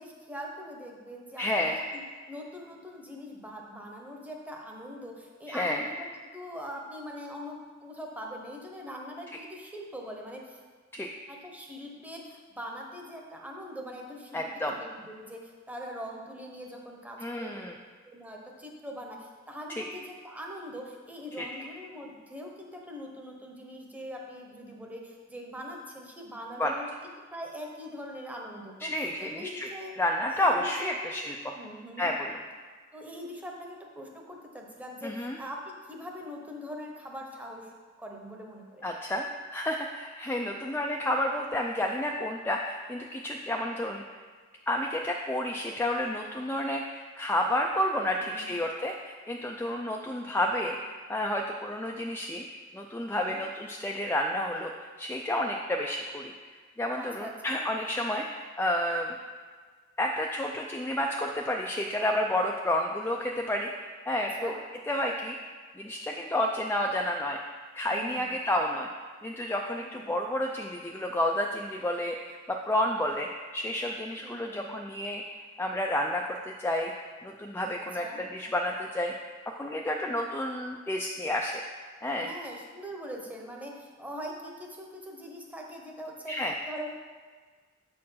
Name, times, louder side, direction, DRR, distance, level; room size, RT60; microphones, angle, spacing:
voice 1, 0.0-2.0 2.3-6.1 6.3-10.6 11.3-17.6 18.0-28.9 29.2-30.0 30.3-31.1 31.6-32.2 32.9-37.7 38.0-38.9 48.2-48.6 53.1-53.4 56.9-57.6 64.1-64.6 67.8-68.3 69.7-70.1 74.2-74.7 77.7-78.2 82.2-86.3 86.7-86.9, equal, 10° right, 0 dB, 0.9 m, -42 dB
voice 2, 1.4-1.8 5.5-5.8 10.9-11.1 14.3-14.8 17.2-17.8 19.7-19.8 21.4-21.5 26.6-26.7 28.8-29.7 30.0-31.5 32.0-32.4 35.0-35.4 38.8-44.2 44.7-52.4 52.7-56.3 56.8-59.1 60.0-64.5 64.9-65.4 65.8-67.4 67.7-68.9 69.2-75.2 75.6-76.9 77.2-78.0 78.3-79.1 79.6-81.6 82.0-82.3 86.3-86.5, left 1 dB, 10° left, 1 dB, 0.3 m, -30 dB
7.3 x 4.4 x 5.6 m, 1.5 s
head